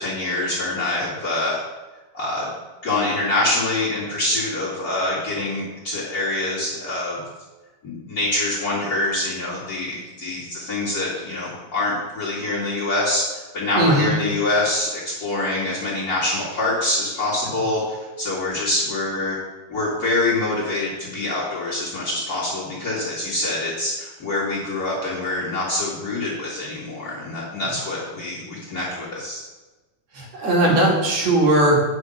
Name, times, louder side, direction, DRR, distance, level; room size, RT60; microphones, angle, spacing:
voice 1, 0.0-1.6 2.1-2.5 2.8-7.2 7.8-13.2 13.5-19.4 19.7-29.5, left 2 dB, 30° left, -10 dB, 2.2 m, -25 dB
voice 2, 13.8-14.2 30.1-31.8, right 1 dB, 50° right, -2 dB, 2.8 m, -18 dB
9.2 x 6.1 x 6.5 m, 1.2 s
omnidirectional pair, 4.5 m